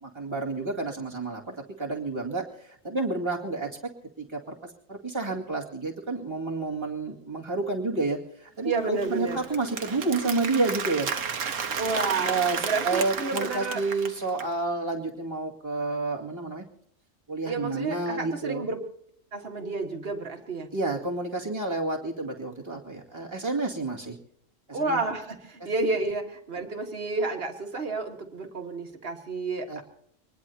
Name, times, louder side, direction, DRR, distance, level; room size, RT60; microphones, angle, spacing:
voice 1, 0.0-3.7 4.2-4.5 4.9-11.1 12.2-16.6 17.3-18.6 20.7-24.2 24.7-25.0 29.7-29.8, right 3 dB, 20° right, -3 dB, 2.3 m, -30 dB
voice 2, 8.6-9.4 11.8-13.8 17.5-18.8 19.3-20.7 24.7-29.8, right 3 dB, 50° right, 3 dB, 1.9 m, -30 dB
Applause, 8.7-14.5, right 6 dB, 75° right, 1.4 m, -33 dB
24.5 x 19.5 x 2.8 m, 0.67 s
omnidirectional pair, 1.3 m